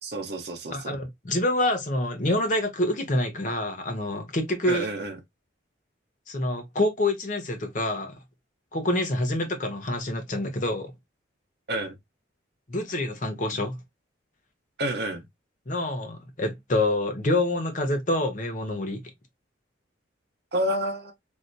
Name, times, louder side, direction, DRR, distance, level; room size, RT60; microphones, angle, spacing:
voice 1, 0.0-0.9 4.6-5.2 11.7-11.9 14.8-15.2 20.5-21.1, right 1 dB, 55° right, 0.8 m, -29 dB
voice 2, 0.7-4.9 6.3-8.2 8.7-10.9 12.7-13.8 15.7-19.0, left 1 dB, 40° left, 0.7 m, -27 dB
3.3 x 2.7 x 2.6 m
head